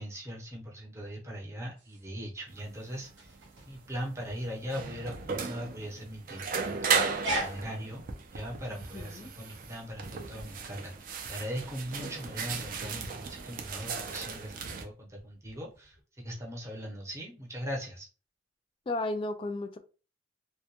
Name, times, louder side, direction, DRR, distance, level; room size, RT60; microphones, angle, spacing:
voice 1, 0.0-3.4 3.7-6.7 7.4-8.0 8.3-18.1, equal, 15° right, 0.7 m, -40 dB
sound 1, 1.7-16.0, right 1 dB, 85° right, 0.9 m, -44 dB
sound 2, 2.5-14.9, right 5 dB, 50° right, 0.4 m, -36 dB
voice 2, 8.9-9.3 18.9-19.8, left 2 dB, 30° left, 0.3 m, -34 dB
2.1 x 2.1 x 2.8 m
head